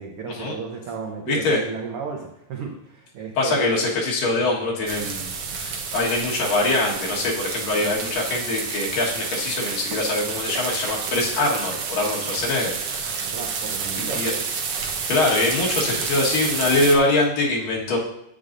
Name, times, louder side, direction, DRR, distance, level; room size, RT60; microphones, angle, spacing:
voice 1, 0.0-3.7 13.1-14.2, right 5 dB, 85° right, 0 dB, 1.2 m, -34 dB
voice 2, 1.3-1.6 3.4-13.3 14.0-14.3 15.1-18.0, left 2 dB, 85° left, -3 dB, 3.2 m, -23 dB
sound 1, 4.9-17.0, right 5 dB, 70° right, 1.4 m, -29 dB
10.5 x 8.2 x 2.6 m, 0.81 s
omnidirectional pair, 3.8 m